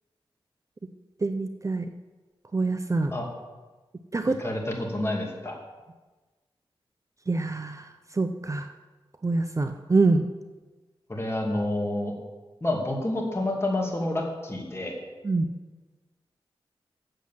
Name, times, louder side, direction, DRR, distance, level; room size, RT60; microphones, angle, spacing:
voice 1, 1.2-1.9 2.5-3.1 4.1-4.4 7.3-8.7 9.2-10.2 15.2-15.4, right 3 dB, 30° right, 8 dB, 0.6 m, -25 dB
voice 2, 4.4-5.6 11.1-12.1 12.6-15.0, left 1 dB, 25° left, -1 dB, 2.6 m, -28 dB
7.7 x 7.4 x 7.5 m, 1.2 s
cardioid pair, 55°, 10 cm